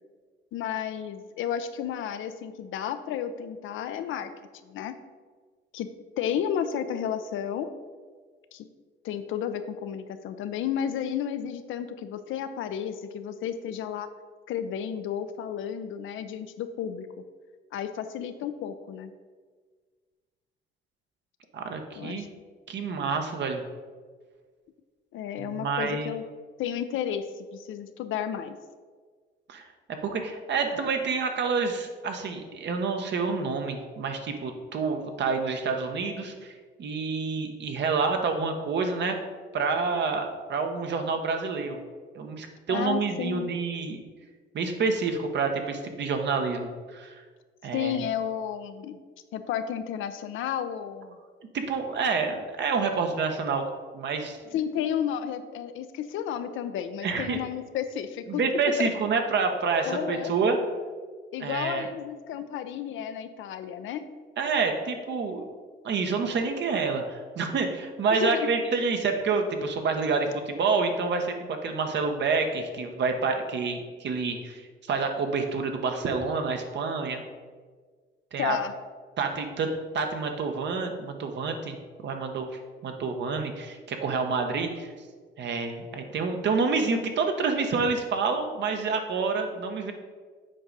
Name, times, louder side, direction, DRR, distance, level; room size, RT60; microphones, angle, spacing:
voice 1, 0.5-4.3 4.7-4.9 5.7-5.9 6.2-7.7 8.5-8.6 9.0-14.1 14.5-17.1 17.7-19.1 22.0-22.3 25.1-26.2 26.6-27.3 27.5-28.5 42.7-43.5 47.7-49.0 49.3-51.2 54.5-58.4 58.8-58.9 59.8-60.3 61.3-64.1 68.1-68.5 78.4-78.7, left 9 dB, 80° left, 10 dB, 0.6 m, -32 dB
voice 2, 21.5-22.3 22.7-23.6 25.4-26.1 29.5-29.6 30.0-36.5 36.8-39.2 39.5-41.8 42.1-44.0 44.5-47.2 47.6-48.0 51.5-53.7 53.9-54.4 57.0-57.4 58.3-60.6 61.4-61.9 64.4-65.4 65.8-77.2 78.3-78.6 79.2-79.7 79.9-81.8 82.0-82.5 82.8-84.9 85.4-89.9, right 4 dB, 60° right, 5 dB, 1.0 m, -28 dB
7.7 x 4.8 x 4.0 m, 1.5 s
cardioid pair, 90°, 20 cm